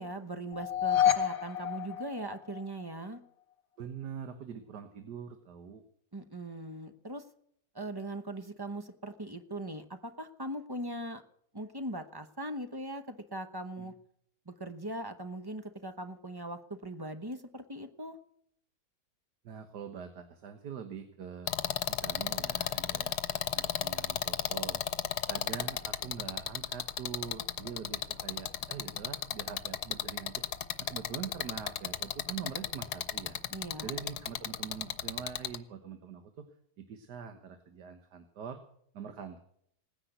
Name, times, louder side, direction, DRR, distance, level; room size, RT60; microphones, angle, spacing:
voice 1, 0.0-3.2 6.1-7.2 7.7-11.2 11.5-13.9 14.5-18.2 33.5-34.0, right 1 dB, 20° right, 8 dB, 0.8 m, -40 dB
sound 1, 0.5-2.8, left 9 dB, 60° left, 1.5 m, -29 dB
voice 2, 3.8-5.8 13.8-13.9 19.4-21.5 21.9-23.2 23.5-24.8 25.3-30.4 30.8-33.4 33.8-36.5 36.8-38.6 38.9-39.4, right 7 dB, 85° right, 7 dB, 1.8 m, -43 dB
sound 2, 21.5-35.6, left 10 dB, 75° left, 1.3 m, -34 dB
18.0 x 10.0 x 8.0 m, 0.69 s
omnidirectional pair, 1.7 m